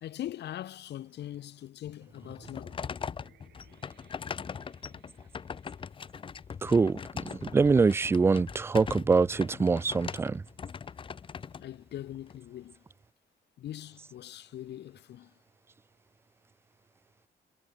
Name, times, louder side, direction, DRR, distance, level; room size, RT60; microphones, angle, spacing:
voice 1, 0.0-2.8 11.6-12.8 13.6-15.3, left 12 dB, 75° left, 2.2 m, -41 dB
sound 1, 2.1-12.4, left 6 dB, 30° left, 1.0 m, -41 dB
sound 2, 2.4-7.6, right 12 dB, 75° right, 7.4 m, -65 dB
voice 2, 6.6-7.0 7.2-10.4, right 4 dB, 15° right, 0.3 m, -24 dB
wide cardioid pair, 180°, 18 cm